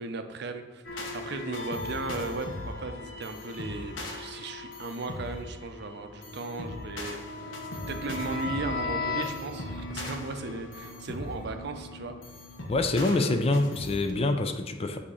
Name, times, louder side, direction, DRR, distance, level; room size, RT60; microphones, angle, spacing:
voice 1, 0.0-7.6 7.9-12.1 13.0-13.8, right 3 dB, 60° right, 7 dB, 0.5 m, -37 dB
sound 1, 0.8-14.1, left 2 dB, 80° left, 0.9 m, -37 dB
voice 2, 12.7-15.0, left 2 dB, 30° left, 7 dB, 0.4 m, -26 dB
8.4 x 2.8 x 4.8 m, 1.2 s
head